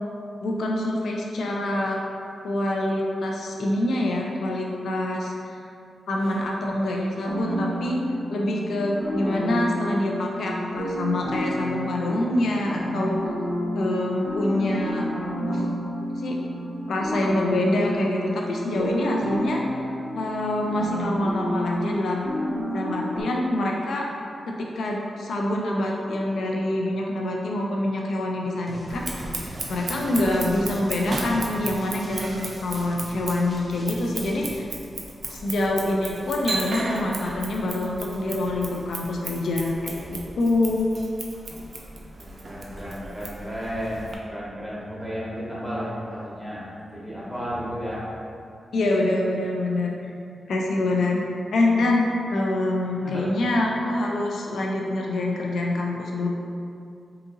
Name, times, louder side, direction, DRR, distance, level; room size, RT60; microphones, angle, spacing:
voice 1, 0.4-2.0 2.4-5.6 6.1-8.0 8.3-13.3 13.7-15.0 15.5-15.7 16.2-16.4 16.9-19.6 20.1-22.3 22.7-24.1 24.5-34.7 35.3-40.9 48.7-50.1 50.5-51.2 51.5-56.3, left 1 dB, 85° left, -1 dB, 0.3 m, -26 dB
sound 1, 7.2-23.2, equal, 65° left, 1.0 m, -30 dB
sound 2, 28.7-34.6, equal, 25° left, 0.5 m, -43 dB
Scissors, 28.9-44.2, right 2 dB, 40° right, 0.4 m, -35 dB
voice 2, 42.2-46.6 46.9-48.0 53.0-53.3, equal, ahead, -8 dB, 0.7 m, -33 dB
3.7 x 2.7 x 2.5 m, 2.5 s
wide cardioid pair, 175°, 0 cm